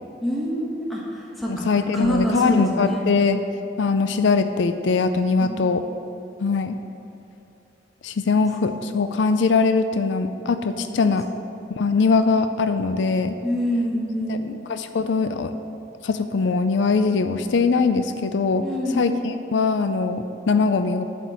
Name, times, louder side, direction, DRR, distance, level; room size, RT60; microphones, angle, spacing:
voice 1, 0.2-1.0 1.4-1.6 1.9-3.0 5.4-5.6 10.8-11.1 13.4-14.5 18.6-19.1, equal, ahead, -5 dB, 1.2 m, -26 dB
voice 2, 1.5-3.4 3.8-5.8 6.4-6.8 8.0-11.3 11.8-13.4 14.3-15.5 16.0-21.0, left 4 dB, 75° left, 9 dB, 0.4 m, -21 dB
11.5 x 4.5 x 8.2 m, 2.8 s
head